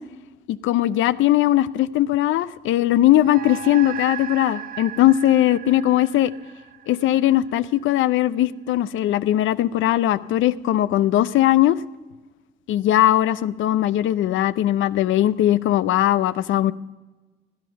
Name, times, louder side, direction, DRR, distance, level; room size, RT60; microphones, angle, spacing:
voice 1, 0.5-6.3 6.9-11.8 12.7-16.7, left 13 dB, 80° left, 16 dB, 0.5 m, -19 dB
sound 1, 3.1-7.8, right 10 dB, 45° right, 0.4 m, -37 dB
16.0 x 11.0 x 5.8 m, 1.2 s
cardioid pair, 90°, 20 cm